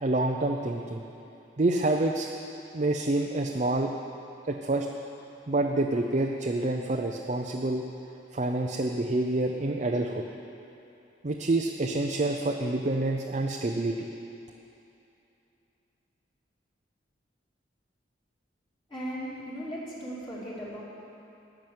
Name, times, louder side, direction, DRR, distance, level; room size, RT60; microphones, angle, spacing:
voice 1, 0.0-1.0 1.6-2.3 2.7-3.9 4.5-4.9 5.5-7.8 8.3-10.2 11.2-14.1, right 2 dB, 40° right, 1 dB, 0.6 m, -27 dB
voice 2, 18.9-20.8, equal, 25° left, -8 dB, 2.5 m, -37 dB
14.0 x 6.1 x 9.3 m, 2.8 s
head